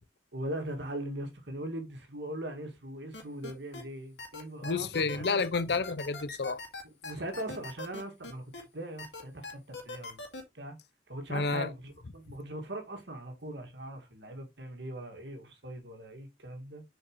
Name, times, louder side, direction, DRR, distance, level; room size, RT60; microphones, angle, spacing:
voice 1, 0.3-5.4 6.8-10.2 10.5-10.8 11.1-16.8, right 1 dB, 85° right, 1.9 m, -40 dB
sound 1, 3.1-3.8 4.2-8.6 9.0-10.4, left 3 dB, 90° left, 2.1 m, -41 dB
voice 2, 4.6-6.6 11.3-11.7, left 4 dB, 65° left, 0.6 m, -30 dB
7.2 x 5.1 x 3.0 m
head